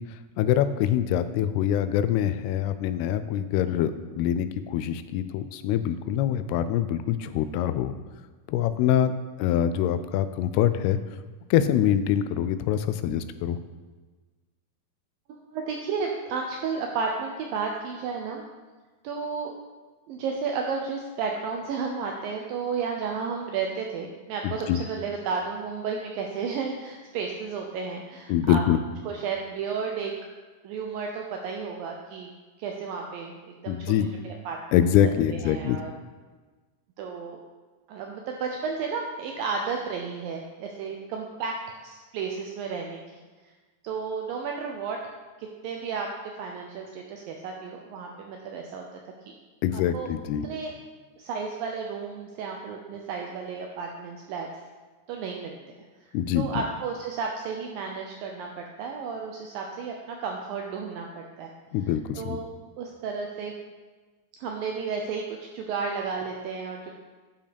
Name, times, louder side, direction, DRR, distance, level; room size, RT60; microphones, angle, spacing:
voice 1, 0.4-8.0 8.5-9.1 9.4-11.0 11.5-13.6 24.4-24.8 28.3-28.8 33.7-34.1 34.7-35.8 49.6-50.5 56.1-56.6 61.7-62.4, left 10 dB, 85° left, 11 dB, 2.6 m, -24 dB
voice 2, 15.3-18.4 19.0-19.5 20.1-28.6 29.1-30.1 30.6-32.3 32.6-33.9 34.2-34.8 35.3-35.9 37.0-37.4 37.9-41.6 41.8-43.0 43.8-45.0 45.4-48.8 49.7-50.1 50.4-50.7 51.2-54.5 55.1-55.6 56.0-61.5 61.9-62.5 62.8-63.6 64.4-66.9, right 5 dB, 75° right, 1 dB, 2.2 m, -33 dB
11.0 x 5.3 x 5.2 m, 1.3 s
omnidirectional pair, 4.6 m